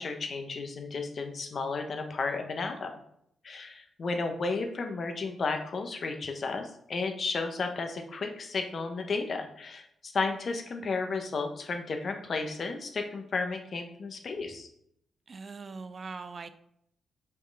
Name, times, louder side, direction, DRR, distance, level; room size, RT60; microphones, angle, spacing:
voice 1, 0.0-2.9 3.4-14.7, left 4 dB, 55° left, 1.1 m, -33 dB
voice 2, 15.3-16.5, right 4 dB, 50° right, 0.6 m, -41 dB
5.4 x 5.1 x 4.1 m
hypercardioid pair, 40°, 0 cm